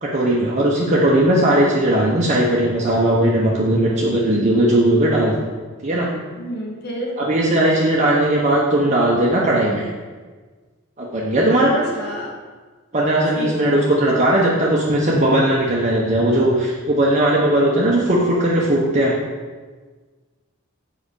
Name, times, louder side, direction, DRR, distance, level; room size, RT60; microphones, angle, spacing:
voice 1, 0.0-5.4 5.8-6.1 7.2-9.9 11.0-11.9 12.9-19.1, right 1 dB, 35° right, -4 dB, 1.1 m, -18 dB
voice 2, 6.4-7.1 11.9-12.3 13.4-13.9, equal, 50° left, -2 dB, 2.1 m, -30 dB
7.8 x 5.1 x 7.0 m, 1.4 s
head